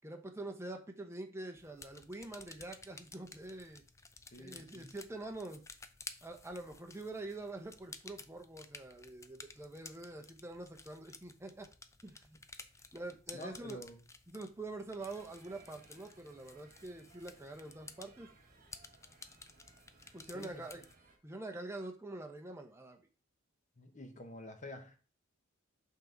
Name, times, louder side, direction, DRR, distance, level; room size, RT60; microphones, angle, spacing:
voice 1, 0.0-3.8 4.4-5.6 6.2-11.7 12.0-12.4 12.9-13.8 14.3-18.3 20.1-20.8 21.2-23.1, right 2 dB, 15° right, 4 dB, 0.9 m, -45 dB
sound 1, 1.6-21.0, left 4 dB, 15° left, 0.4 m, -54 dB
voice 2, 4.3-4.9 13.3-14.0 20.3-20.7 23.8-25.0, left 1 dB, 40° left, 6 dB, 1.1 m, -49 dB
sound 2, 15.0-21.2, right 3 dB, 45° right, 1.4 m, -63 dB
6.2 x 5.6 x 3.9 m, 0.36 s
head